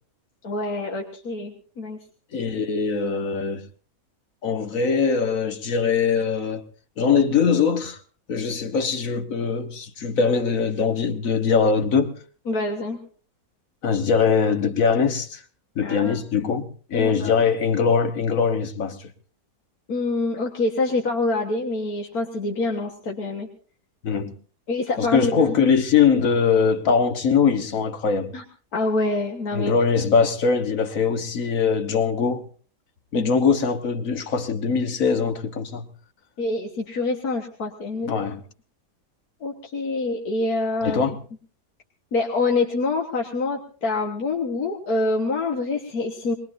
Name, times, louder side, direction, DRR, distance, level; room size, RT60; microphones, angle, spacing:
voice 1, 0.4-2.0 12.5-13.0 15.8-16.5 16.9-17.5 19.9-23.5 24.7-25.6 28.3-28.4 28.7-29.7 33.1-33.3 36.4-38.1 39.4-41.0 42.1-46.4, left 3 dB, 80° left, 2.0 m, -26 dB
voice 2, 2.3-3.6 4.4-6.6 7.0-8.0 8.3-12.2 13.8-15.4 15.7-19.1 24.0-24.3 25.0-28.3 29.5-32.4 33.1-35.9 38.0-38.4 40.8-41.1, left 6 dB, 65° left, 1.7 m, -22 dB
23.0 x 21.0 x 2.7 m
omnidirectional pair, 1.6 m